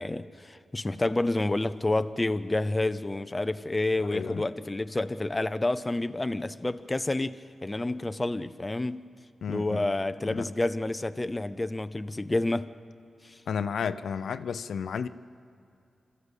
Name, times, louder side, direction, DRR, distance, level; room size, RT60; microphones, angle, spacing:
voice 1, 0.0-9.0 9.5-12.7 13.2-13.4, left 2 dB, 20° left, 0.6 m, -29 dB
voice 2, 4.1-4.4 9.4-9.9 10.2-10.4 13.5-15.1, left 6 dB, 85° left, 0.6 m, -32 dB
26.5 x 14.0 x 8.2 m
wide cardioid pair, 90°, 0 cm